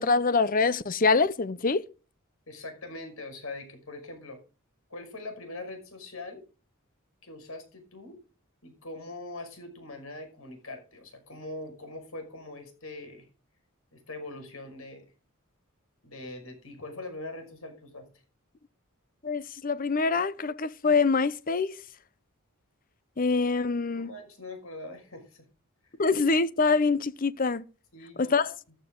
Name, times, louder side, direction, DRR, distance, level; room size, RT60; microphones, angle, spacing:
voice 1, 0.0-1.8 19.2-21.8 23.2-24.1 26.0-27.6 28.2-28.6, left 4 dB, 40° left, 0.7 m, -25 dB
voice 2, 2.5-4.4 4.9-6.4 7.2-8.2 8.6-13.3 13.9-15.1 16.0-18.1 24.0-25.4 27.9-28.4, left 2 dB, 85° left, 5.6 m, -42 dB
14.5 x 11.5 x 3.8 m
head